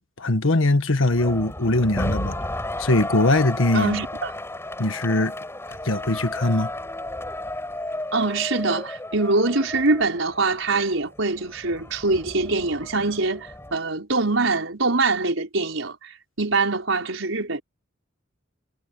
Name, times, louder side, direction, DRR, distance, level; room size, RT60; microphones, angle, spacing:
voice 1, 0.0-2.4 2.8-4.0 4.8-5.3 5.8-6.7, left 2 dB, 90° left, 1.5 m, -21 dB
sound 1, 1.1-13.8, left 1 dB, 15° left, 6.2 m, -33 dB
voice 2, 3.7-4.3 8.1-17.6, right 3 dB, 80° right, 4.8 m, -24 dB
head